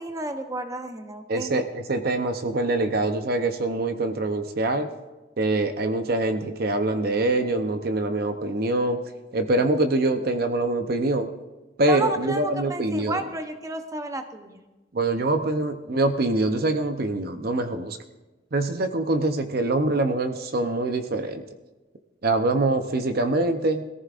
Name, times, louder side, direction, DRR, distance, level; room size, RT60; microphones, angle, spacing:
voice 1, 0.0-1.6 11.9-14.6, right 2 dB, 15° right, 6 dB, 0.8 m, -31 dB
voice 2, 1.3-4.9 5.4-9.0 9.3-11.3 11.8-13.2 14.9-18.0 18.5-21.4 22.2-23.9, right 2 dB, 55° right, 7 dB, 0.7 m, -24 dB
21.5 x 14.5 x 2.5 m, 1.1 s
head